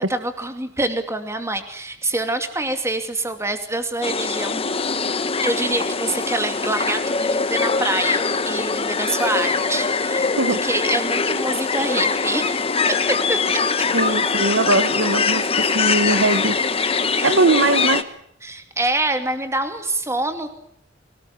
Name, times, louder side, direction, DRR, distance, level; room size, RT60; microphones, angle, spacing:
voice 1, 0.1-4.6 5.4-10.3 10.6-12.5 12.9-13.6 17.1-17.4 18.4-20.5, right 2 dB, 15° right, 7 dB, 2.6 m, -26 dB
sound 1, 4.0-18.0, left 4 dB, 30° left, 1.2 m, -22 dB
voice 2, 13.9-16.6 17.2-18.0, right 2 dB, 85° right, 12 dB, 1.5 m, -20 dB
24.0 x 19.0 x 8.7 m, 0.71 s
head